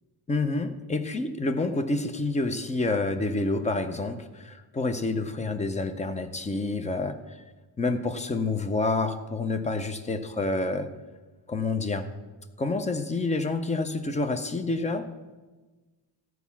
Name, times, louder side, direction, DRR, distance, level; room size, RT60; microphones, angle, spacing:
voice 1, 0.3-7.2 7.8-10.9 11.5-12.1 12.6-15.1, left 3 dB, 15° left, 9 dB, 0.4 m, -28 dB
13.5 x 4.6 x 7.1 m, 1.2 s
wide cardioid pair, 175°, 45 cm